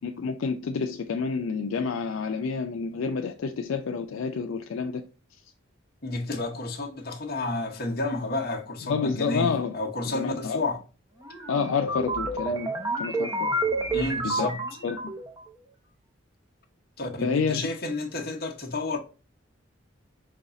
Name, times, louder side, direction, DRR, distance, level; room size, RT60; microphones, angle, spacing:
voice 1, 0.0-5.0 5.3-5.4 8.9-9.7 10.1-10.6 11.5-12.7 13.0-13.5 14.2-14.5 14.8-15.1 17.2-17.7, left 5 dB, 80° left, 0.4 m, -29 dB
voice 2, 6.0-10.8 13.9-14.6 17.0-19.0, left 2 dB, 50° left, 0.9 m, -31 dB
sound 1, 11.2-15.4, right 2 dB, 15° right, 0.7 m, -29 dB
5.2 x 2.3 x 3.8 m
head